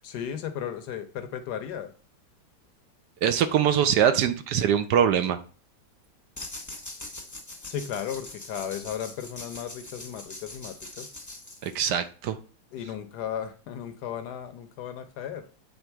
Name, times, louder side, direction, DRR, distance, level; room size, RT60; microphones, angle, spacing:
voice 1, 0.0-1.9 7.6-11.1 12.7-15.4, left 9 dB, 70° left, 10 dB, 1.1 m, -35 dB
voice 2, 3.2-5.4 11.6-12.4, right 9 dB, 70° right, 10 dB, 1.1 m, -23 dB
sound 1, 6.4-12.1, left 2 dB, 20° left, 0.5 m, -42 dB
8.0 x 3.7 x 4.5 m, 0.39 s
omnidirectional pair, 2.0 m